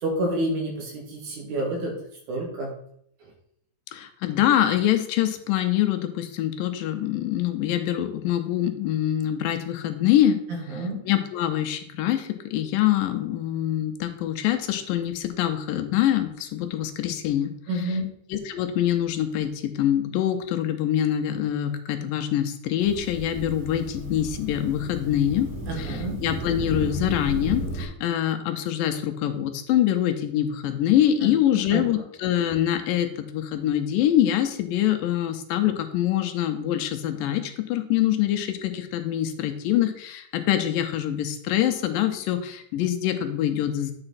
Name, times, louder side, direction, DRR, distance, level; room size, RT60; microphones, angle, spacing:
voice 1, 0.0-1.9 2.3-2.7 10.7-11.0 17.7-18.1 25.7-26.2 31.5-31.8, right 1 dB, 65° right, -1 dB, 3.1 m, -28 dB
voice 2, 3.9-10.4 11.1-17.5 18.3-25.5 25.8-43.9, left 11 dB, 80° left, 8 dB, 2.4 m, -24 dB
sound 1, 22.8-27.9, right 1 dB, 40° right, 4.5 m, -33 dB
8.8 x 4.9 x 4.2 m, 0.69 s
omnidirectional pair, 4.0 m